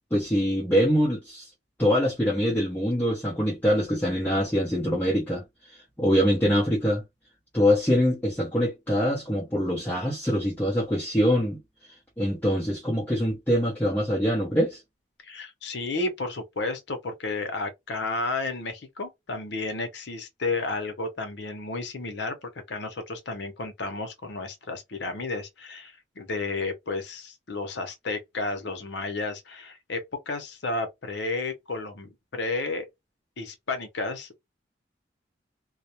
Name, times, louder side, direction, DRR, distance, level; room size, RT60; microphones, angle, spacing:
voice 1, 0.1-1.5 1.8-5.4 6.0-7.0 7.5-11.6 12.2-14.8, equal, 10° left, 0.6 m, -24 dB
voice 2, 15.2-32.9 33.4-34.4, left 3 dB, 65° left, 0.7 m, -32 dB
2.3 x 2.0 x 2.8 m
head